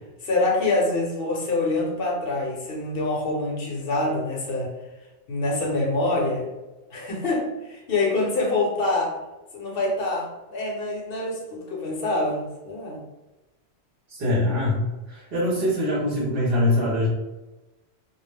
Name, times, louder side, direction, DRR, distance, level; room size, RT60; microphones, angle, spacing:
voice 1, 0.2-4.7 5.3-6.5 6.9-9.2 9.5-13.0, left 2 dB, 60° left, -2 dB, 0.9 m, -25 dB
voice 2, 14.1-14.8 15.1-17.1, left 1 dB, 60° right, -4 dB, 0.8 m, -23 dB
2.2 x 2.0 x 3.2 m, 1.0 s
omnidirectional pair, 1.1 m